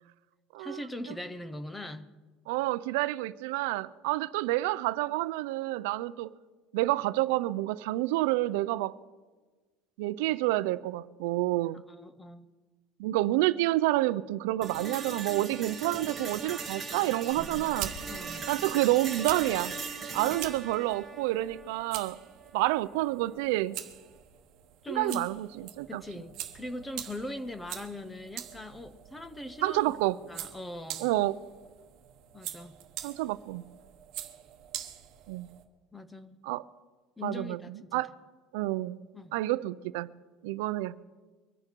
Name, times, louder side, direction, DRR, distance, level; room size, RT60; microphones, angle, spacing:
voice 1, 0.6-2.1 11.9-12.5 18.1-18.5 24.8-25.3 25.9-29.8 30.3-31.1 32.3-32.8 35.9-36.4 37.2-38.0 39.1-39.3, left 1 dB, 5° left, 0.6 m, -40 dB
voice 2, 2.5-6.3 6.7-9.0 10.0-11.8 13.0-17.9 18.5-19.7 20.1-22.2 22.5-23.8 24.9-26.0 29.6-30.2 31.0-31.4 33.0-33.7 35.3-35.5 36.4-36.6 37.2-37.6 37.9-38.1 38.5-39.0 39.3-40.1 40.4-41.0, right 17 dB, 75° right, 0.5 m, -29 dB
sound 1, 14.6-22.6, right 4 dB, 10° right, 1.4 m, -39 dB
sound 2, 17.3-35.6, right 11 dB, 40° right, 1.2 m, -44 dB
23.5 x 9.9 x 4.5 m
cardioid pair, 180°, 0 cm